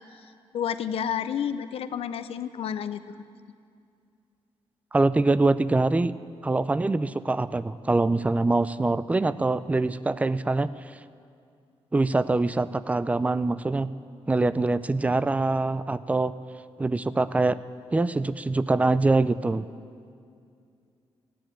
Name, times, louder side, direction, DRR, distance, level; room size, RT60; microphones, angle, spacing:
voice 1, 0.5-3.0, left 8 dB, 70° left, 11 dB, 0.7 m, -30 dB
voice 2, 4.9-6.1 6.4-10.7 11.9-13.9 14.3-16.3 16.8-17.6 17.9-19.7, right 2 dB, 15° right, 15 dB, 0.4 m, -24 dB
15.0 x 10.0 x 9.1 m, 2.4 s
cardioid pair, 125°, 10 cm